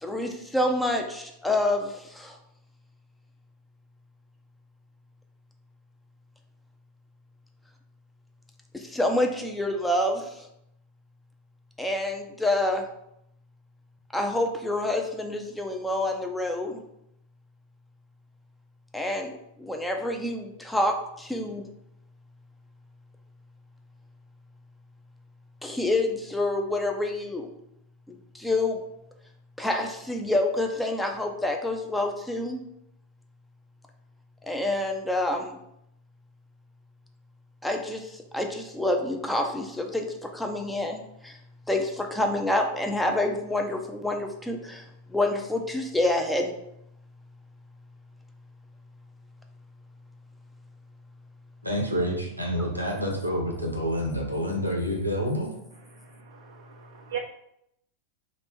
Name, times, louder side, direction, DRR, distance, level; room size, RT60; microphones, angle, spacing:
voice 1, 0.0-2.4 8.7-10.5 11.8-12.8 14.1-16.8 18.9-21.6 25.6-27.5 28.1-28.8 29.6-32.6 34.4-35.6 37.6-41.4 41.7-46.5, left 1 dB, 5° left, 3 dB, 0.5 m, -27 dB
voice 2, 51.6-55.5, equal, 90° right, 0 dB, 0.8 m, -28 dB
voice 3, 55.9-57.2, right 9 dB, 65° right, 2 dB, 0.3 m, -39 dB
3.1 x 2.5 x 4.4 m, 0.78 s
figure-of-eight pair, 90°, 0 cm